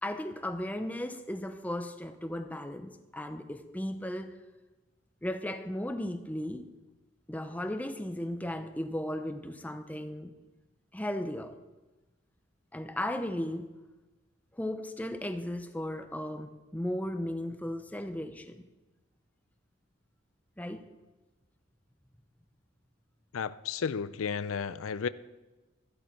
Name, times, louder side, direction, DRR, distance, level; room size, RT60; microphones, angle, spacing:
voice 1, 0.0-4.4 5.2-6.7 7.3-10.3 10.9-11.6 12.7-13.7 14.5-18.6 20.6-20.9, left 1 dB, 5° left, 0.7 m, -36 dB
voice 2, 23.3-25.1, left 6 dB, 85° left, 0.5 m, -33 dB
13.5 x 12.5 x 4.5 m
head